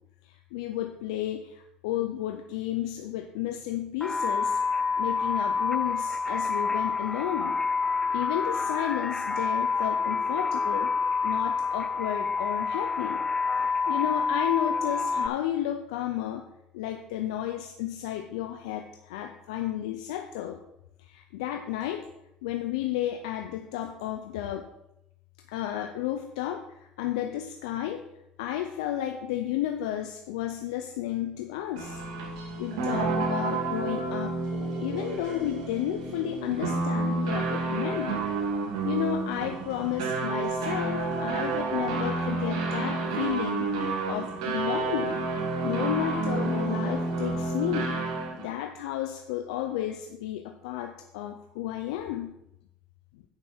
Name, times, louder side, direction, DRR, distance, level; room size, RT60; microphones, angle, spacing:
voice 1, 0.2-4.6 5.0-7.6 8.1-10.9 11.2-13.2 13.9-16.5 16.7-20.6 21.0-22.0 22.4-24.7 25.5-28.0 28.4-32.0 32.6-34.4 34.8-38.2 38.8-45.2 45.6-48.0 48.4-52.4 53.1-53.2, left 12 dB, 85° left, 5 dB, 0.7 m, -32 dB
sound 1, 4.0-15.3, left 5 dB, 15° left, 0.4 m, -28 dB
sound 2, 31.8-48.5, right 3 dB, 90° right, 2.2 m, -30 dB
9.0 x 5.6 x 6.1 m, 0.84 s
supercardioid pair, 85°, 3 cm